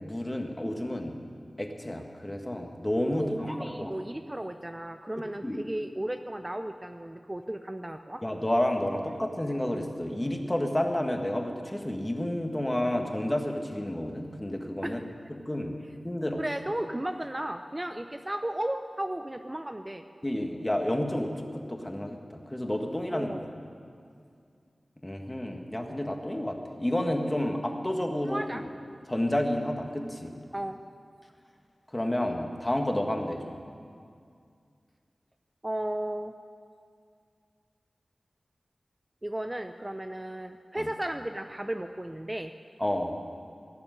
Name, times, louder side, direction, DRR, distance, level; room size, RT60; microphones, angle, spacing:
voice 1, 0.0-1.1 1.6-3.9 5.4-5.6 8.2-15.0 15.4-15.8 16.0-16.4 20.2-23.3 25.0-28.4 29.1-30.3 31.9-33.5 40.8-40.9 42.8-43.2, left 1 dB, 20° left, 3 dB, 1.7 m, -30 dB
voice 2, 3.1-8.2 14.8-15.0 16.4-20.0 23.1-23.5 28.2-28.6 30.5-30.8 35.6-36.3 39.2-42.5, right 1 dB, 20° right, 7 dB, 0.6 m, -34 dB
17.0 x 6.9 x 9.8 m, 2.3 s
cardioid pair, 45°, 0 cm